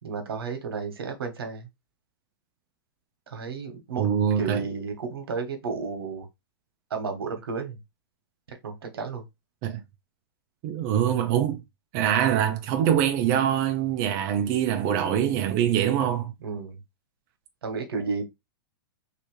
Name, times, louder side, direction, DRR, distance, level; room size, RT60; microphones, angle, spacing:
voice 1, 0.0-1.7 3.3-4.1 4.4-6.3 6.9-7.8 8.5-9.2 16.4-16.8 17.6-18.3, right 5 dB, 90° right, 1.2 m, -32 dB
voice 2, 4.0-4.6 9.6-9.8 10.6-11.6 11.9-16.3, right 9 dB, 35° right, 0.5 m, -24 dB
3.2 x 2.9 x 3.1 m
hypercardioid pair, 145°, 12 cm